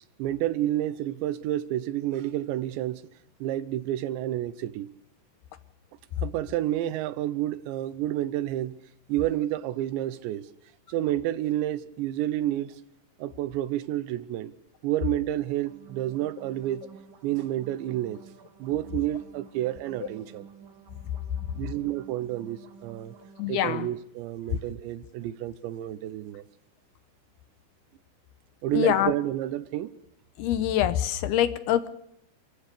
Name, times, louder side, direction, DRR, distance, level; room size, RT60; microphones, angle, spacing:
voice 1, 0.2-3.0 3.4-4.9 6.2-8.8 9.1-10.5 10.9-12.8 13.2-14.5 14.8-16.9 17.2-18.2 18.6-20.5 21.6-23.1 23.5-26.4 28.6-29.9, right 13 dB, 90° right, 3.2 m, -30 dB
sound 1, 15.5-23.5, right 6 dB, 60° right, 3.7 m, -51 dB
voice 2, 23.4-23.9 28.7-29.1 30.4-31.9, left 11 dB, 75° left, 2.8 m, -25 dB
28.0 x 15.5 x 6.8 m
omnidirectional pair, 5.0 m